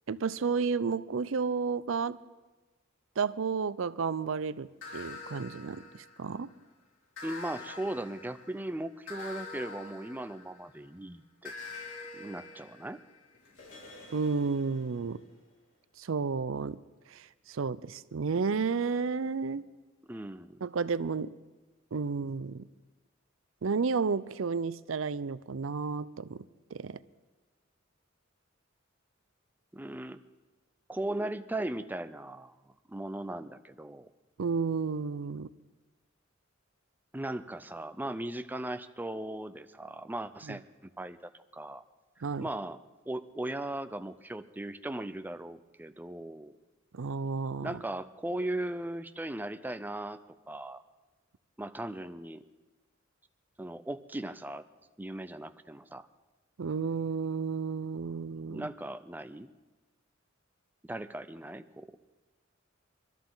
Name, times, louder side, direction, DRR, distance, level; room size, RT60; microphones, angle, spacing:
voice 1, 0.1-2.2 3.2-6.5 14.1-15.2 16.0-16.8 17.1-19.6 20.6-21.3 21.9-22.6 23.6-26.4 26.7-27.0 34.4-35.5 40.5-40.6 42.2-42.5 46.9-47.7 56.6-58.7, right 5 dB, 75° right, 17 dB, 0.5 m, -32 dB
sound 1, 4.8-6.5 7.2-10.8 11.5-15.2, left 3 dB, 70° left, 4.0 m, -46 dB
voice 2, 7.2-11.5 12.1-13.0 20.1-20.6 29.7-30.2 30.9-32.6 32.9-34.1 37.1-41.8 42.4-42.8 43.1-46.6 47.6-50.2 50.5-50.8 51.6-52.4 53.6-54.6 55.0-56.0 58.5-59.5 60.8-61.9, right 1 dB, 10° right, 10 dB, 0.5 m, -38 dB
24.0 x 13.5 x 4.0 m, 1.2 s
head